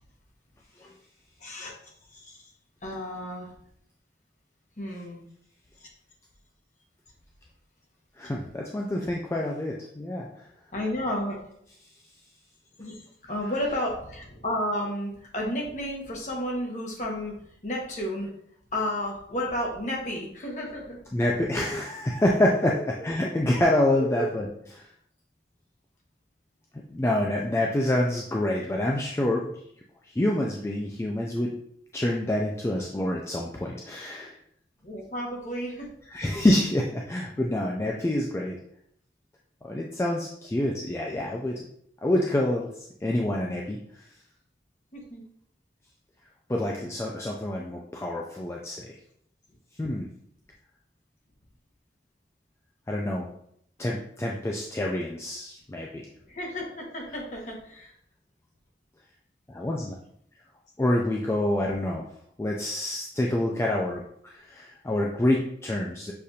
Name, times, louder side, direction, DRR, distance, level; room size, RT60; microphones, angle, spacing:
voice 1, 1.4-1.8 2.1-2.4 2.8-3.5 4.8-5.2 5.8-5.9 9.0-9.1 10.7-11.4 12.8-17.4 17.6-18.3 18.7-21.0 22.7-22.8 24.0-24.3 34.8-35.9 44.9-45.2 56.3-57.9 59.7-60.0, left 1 dB, 40° left, -1 dB, 1.0 m, -32 dB
voice 2, 8.2-10.3 21.1-24.5 24.7-24.9 26.7-29.4 30.0-31.5 31.9-34.4 36.1-38.6 39.6-41.7 42.0-42.7 43.0-43.8 46.5-49.0 49.8-50.1 52.9-53.3 53.8-56.0 59.5-60.0 60.8-62.1 62.4-66.1, left 1 dB, 15° left, -1 dB, 0.3 m, -27 dB
6.5 x 2.5 x 2.8 m, 0.69 s
head